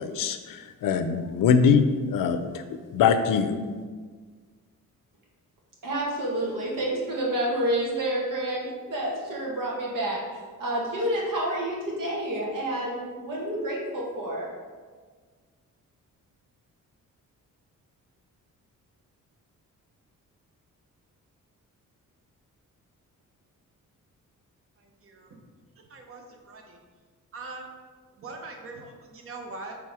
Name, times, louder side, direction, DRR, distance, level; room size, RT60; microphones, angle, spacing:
voice 1, 0.0-2.6 2.9-3.6, left 6 dB, 80° left, 9 dB, 0.6 m, -23 dB
voice 2, 5.8-14.5, right 1 dB, 85° right, -4 dB, 1.8 m, -29 dB
voice 3, 25.9-26.8 27.3-27.6 28.2-29.8, right 3 dB, 45° right, 2 dB, 0.8 m, -41 dB
6.0 x 3.5 x 4.8 m, 1.5 s
wide cardioid pair, 155°, 32 cm